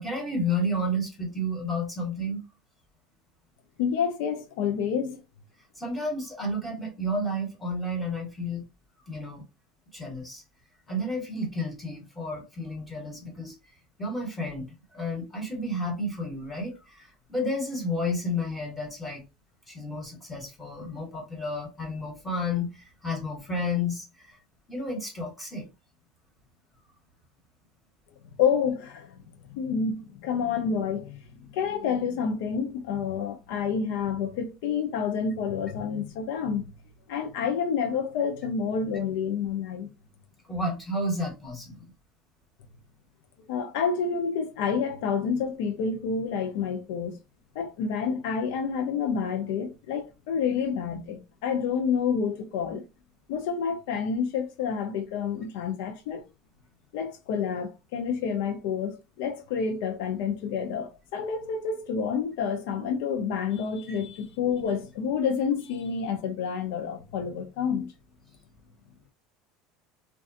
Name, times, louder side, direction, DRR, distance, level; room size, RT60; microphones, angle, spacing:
voice 1, 0.0-2.4 5.7-8.7 9.1-9.4 9.9-10.4 10.9-13.5 14.0-19.2 19.7-24.4 24.7-25.7 40.5-41.8 63.9-64.0, left 1 dB, 5° left, 1.3 m, -31 dB
voice 2, 3.8-5.2 28.2-29.2 29.5-31.2 31.5-36.6 37.1-39.9 43.4-47.2 47.5-52.8 53.3-56.2 56.9-67.9, left 6 dB, 80° left, 0.5 m, -29 dB
2.4 x 2.3 x 2.6 m
supercardioid pair, 130°, 0 cm